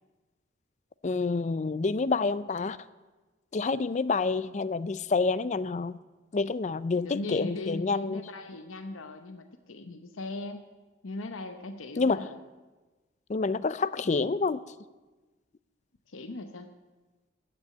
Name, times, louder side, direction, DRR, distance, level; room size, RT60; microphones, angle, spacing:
voice 1, 1.0-2.8 3.5-5.9 6.3-8.2 12.0-12.3 13.3-14.6, left 4 dB, 35° left, 16 dB, 0.4 m, -28 dB
voice 2, 6.9-10.6 11.0-12.4 16.1-16.7, left 2 dB, 85° left, 7 dB, 0.8 m, -39 dB
14.0 x 6.9 x 9.3 m, 1.2 s
head